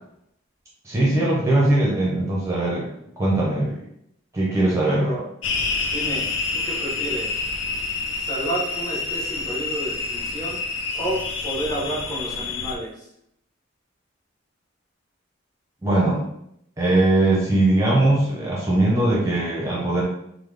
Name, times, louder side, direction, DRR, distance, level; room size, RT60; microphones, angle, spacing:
voice 1, 0.8-2.8 3.2-3.8 4.3-5.1 15.8-16.2 16.8-20.0, right 1 dB, 15° right, -5 dB, 0.6 m, -20 dB
voice 2, 4.8-5.2 5.8-6.3 6.5-7.4 8.3-10.6 10.9-13.1, right 1 dB, 20° left, -5 dB, 0.9 m, -30 dB
sound 1, 5.4-12.8, left 4 dB, 65° left, 0.5 m, -28 dB
3.7 x 2.0 x 3.2 m, 0.76 s
head